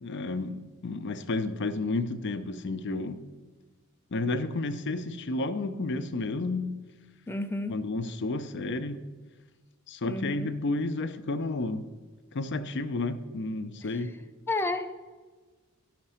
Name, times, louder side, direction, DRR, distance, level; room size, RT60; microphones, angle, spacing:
voice 1, 0.0-3.2 4.1-6.7 7.7-9.0 9.9-11.8 12.3-14.1, left 2 dB, 55° left, 0.6 m, -31 dB
voice 2, 7.3-7.8 10.1-10.5 13.8-14.1 14.5-14.9, left 2 dB, 10° left, 0.5 m, -32 dB
11.5 x 5.9 x 5.6 m
head